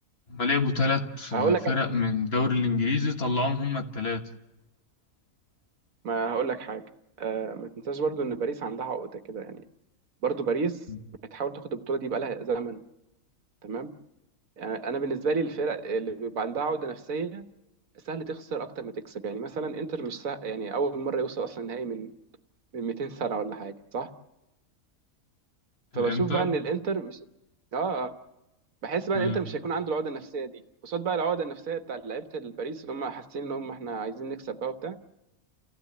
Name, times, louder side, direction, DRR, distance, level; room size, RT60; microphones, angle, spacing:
voice 1, 0.3-4.2 10.9-11.0 25.9-26.5 29.1-29.4, left 3 dB, 45° left, 4 dB, 1.7 m, -27 dB
voice 2, 6.0-6.8 7.2-9.6 10.2-10.8 11.3-12.8 13.6-13.9 14.6-17.4 18.1-22.1 22.7-24.1 25.9-27.2 27.7-28.1 28.8-35.0, right 5 dB, 75° right, 8 dB, 1.6 m, -30 dB
29.5 x 15.5 x 8.6 m, 0.98 s
omnidirectional pair, 1.5 m